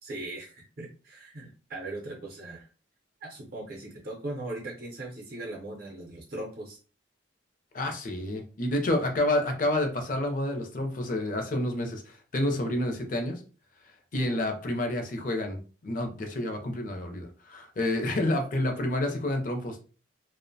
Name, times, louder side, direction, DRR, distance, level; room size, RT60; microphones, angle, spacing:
voice 1, 0.0-2.7 3.2-6.8, right 2 dB, 50° right, -1 dB, 0.5 m, -39 dB
voice 2, 7.7-13.4 14.1-19.8, left 1 dB, 45° left, 4 dB, 0.5 m, -29 dB
2.5 x 2.1 x 2.6 m, 0.37 s
head